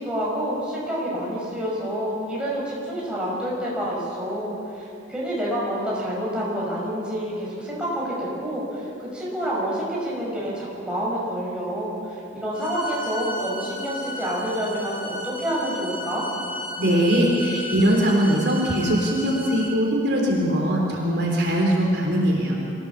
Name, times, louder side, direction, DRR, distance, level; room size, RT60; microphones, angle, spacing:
voice 1, 0.0-12.2 12.4-16.2, equal, 5° right, -6 dB, 5.9 m, -28 dB
sound 1, 12.5-19.7, left 1 dB, 50° left, 3.7 m, -35 dB
voice 2, 16.7-22.5, equal, 60° right, -2 dB, 3.7 m, -21 dB
25.0 x 16.0 x 7.3 m, 2.6 s
head